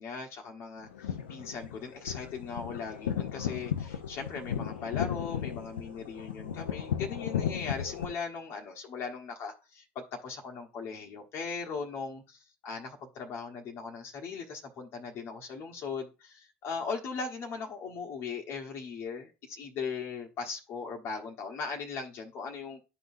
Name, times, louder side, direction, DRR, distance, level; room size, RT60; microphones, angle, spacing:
voice 1, 0.0-22.8, left 5 dB, 50° left, 1 dB, 1.2 m, -39 dB
sound 1, 0.8-8.0, left 9 dB, 80° left, 0.7 m, -35 dB
12.0 x 4.0 x 2.6 m, 0.30 s
figure-of-eight pair, 65°, 6 cm